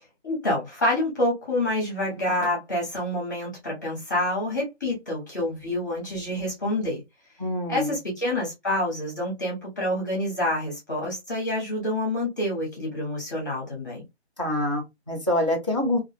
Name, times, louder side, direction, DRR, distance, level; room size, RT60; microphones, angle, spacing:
voice 1, 0.2-7.0 7.7-14.0, left 1 dB, 15° left, 0.8 m, -27 dB
voice 2, 7.4-7.9 14.4-16.0, left 1 dB, 30° right, 0.4 m, -25 dB
2.4 x 2.2 x 2.5 m
figure-of-eight pair, 165°, 34 cm